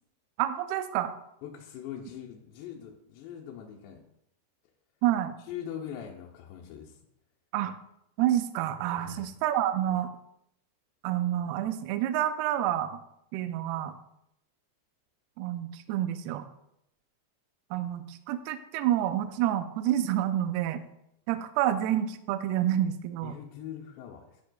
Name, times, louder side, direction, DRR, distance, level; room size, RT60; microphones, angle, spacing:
voice 1, 0.4-1.1 5.0-5.4 7.5-7.7 8.2-10.1 11.0-13.0 13.3-14.0 15.4-16.5 17.7-20.8 21.3-23.3, right 12 dB, 85° right, 10 dB, 2.3 m, -28 dB
voice 2, 1.4-4.0 5.4-7.0 9.0-9.3 23.2-24.4, left 9 dB, 80° left, -1 dB, 2.8 m, -42 dB
10.5 x 6.6 x 2.2 m, 0.80 s
omnidirectional pair, 5.0 m